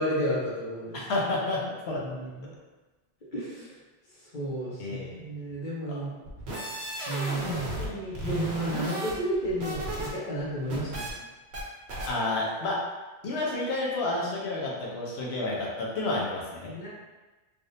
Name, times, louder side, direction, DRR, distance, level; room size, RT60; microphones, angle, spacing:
voice 1, 0.0-1.0 2.0-2.5 3.3-3.7 4.3-6.1 7.1-11.1 16.7-16.9, equal, 45° left, -7 dB, 1.0 m, -32 dB
voice 2, 0.9-2.0 4.8-5.2 5.9-6.0 12.1-12.8 13.2-16.7, left 2 dB, 65° left, -4 dB, 1.0 m, -30 dB
sound 1, 6.3-7.9 8.1-10.1 10.4-11.1 11.5-11.6 11.9-12.1, right 1 dB, 65° right, 1.1 m, -33 dB
3.4 x 2.5 x 2.7 m, 1.2 s
omnidirectional pair, 1.2 m